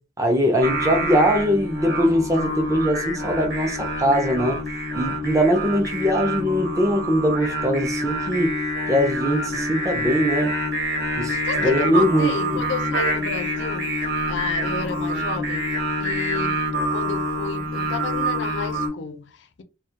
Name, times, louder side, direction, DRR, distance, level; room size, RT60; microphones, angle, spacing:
voice 1, 0.2-4.6 5.0-8.5 8.9-10.5 11.2-12.3, equal, 20° right, 0.5 m, -21 dB
Singing, 0.6-18.9, equal, 60° right, 1.0 m, -26 dB
voice 2, 11.4-13.9 14.3-16.6 16.9-19.6, left 4 dB, 90° left, 0.4 m, -32 dB
2.2 x 2.1 x 2.8 m
head